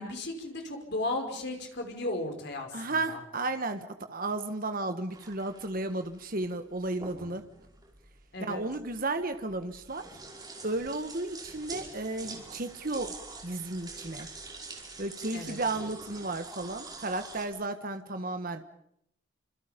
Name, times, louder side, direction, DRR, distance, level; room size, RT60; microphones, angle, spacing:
voice 1, 0.0-3.2 8.3-8.6 15.3-15.6, left 2 dB, 55° left, 3 dB, 5.6 m, -35 dB
voice 2, 2.7-7.4 8.4-10.2 10.6-13.2 13.4-14.3 15.0-18.7, right 2 dB, 45° right, 8 dB, 1.5 m, -33 dB
sound 1, 5.1-17.5, right 3 dB, 20° right, 5.3 m, -46 dB
29.5 x 26.5 x 5.3 m, 0.72 s
head